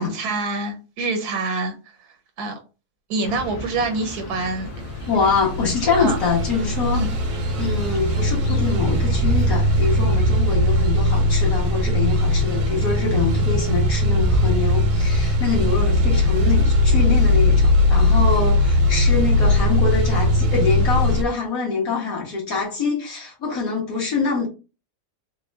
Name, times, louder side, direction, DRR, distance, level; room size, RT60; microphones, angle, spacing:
voice 1, 0.0-1.7 2.4-2.6 3.1-4.7 6.0-6.2 6.9-7.1, right 3 dB, 90° right, 5 dB, 1.4 m, -26 dB
sound 1, 3.2-10.2, left 3 dB, 85° left, 1.2 m, -37 dB
sound 2, 4.7-21.2, left 1 dB, 65° right, 0.6 m, -19 dB
voice 2, 5.1-7.0 7.6-24.5, left 4 dB, 65° left, -2 dB, 1.9 m, -24 dB
3.9 x 2.2 x 3.5 m, 0.33 s
omnidirectional pair, 1.6 m